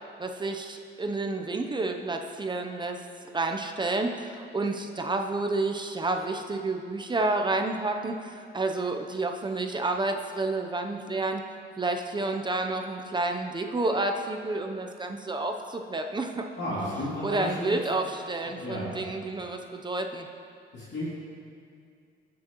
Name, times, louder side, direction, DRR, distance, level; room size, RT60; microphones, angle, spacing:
voice 1, 0.2-3.1 3.3-11.4 11.8-16.4 17.2-20.3, right 2 dB, 25° right, 4 dB, 0.7 m, -30 dB
voice 2, 16.6-17.8 18.4-18.9 20.7-21.1, left 1 dB, 60° left, -9 dB, 2.6 m, -33 dB
18.5 x 6.3 x 3.0 m, 2.4 s
cardioid pair, 90°, 20 cm